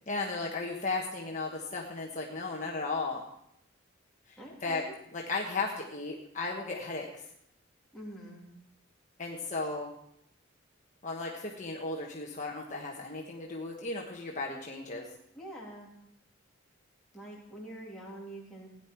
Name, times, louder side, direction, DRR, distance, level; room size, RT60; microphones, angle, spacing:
voice 1, 0.1-3.2 4.3-4.8 5.1-7.1 9.2-9.9 11.0-15.1, left 3 dB, 35° left, -1 dB, 1.3 m, -35 dB
voice 2, 4.4-4.9 7.9-8.4 15.3-15.9 17.1-18.7, right 1 dB, ahead, -6 dB, 3.2 m, -45 dB
16.5 x 10.0 x 4.6 m, 0.74 s
head